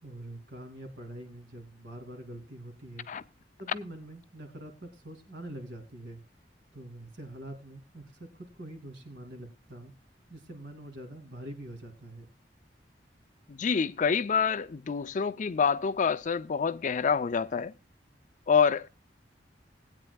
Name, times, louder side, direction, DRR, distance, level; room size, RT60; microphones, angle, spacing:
voice 1, 0.0-3.1 3.6-6.2 6.7-9.9 10.3-12.3, right 1 dB, 70° right, 2.7 m, -44 dB
voice 2, 13.5-17.7 18.5-18.9, left 6 dB, 45° left, 0.4 m, -27 dB
20.0 x 9.0 x 2.3 m
head